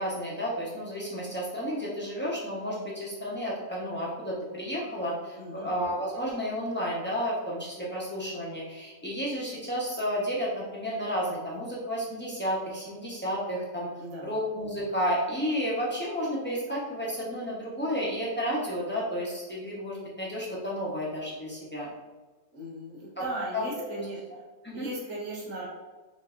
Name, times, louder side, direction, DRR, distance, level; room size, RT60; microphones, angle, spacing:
voice 1, 0.0-13.9 14.2-21.9 23.2-23.3 23.5-23.6 24.0-24.1 24.6-24.9, equal, 10° left, -7 dB, 0.6 m, -32 dB
voice 2, 5.4-5.7 14.0-14.4 22.5-24.2 24.7-25.7, right 1 dB, 60° right, -5 dB, 1.4 m, -37 dB
5.2 x 2.6 x 2.5 m, 1.3 s
omnidirectional pair, 1.6 m